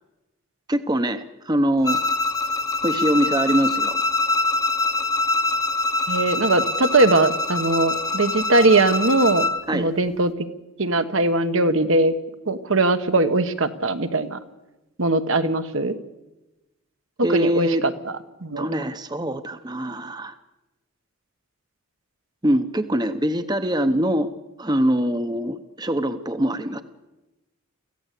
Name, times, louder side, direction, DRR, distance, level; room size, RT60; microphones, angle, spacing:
voice 1, 0.7-2.0 2.8-4.0 9.7-9.9 17.2-17.8 18.6-20.3 22.4-24.3 24.6-26.8, equal, 20° right, 10 dB, 0.8 m, -23 dB
Bowed string instrument, 1.8-9.6, left 3 dB, 15° left, 0.9 m, -24 dB
voice 2, 6.1-10.5 10.8-12.1 12.5-14.4 15.0-15.9 17.3-18.7, right 2 dB, 65° right, 9 dB, 1.2 m, -20 dB
24.5 x 15.5 x 8.3 m, 1.0 s
head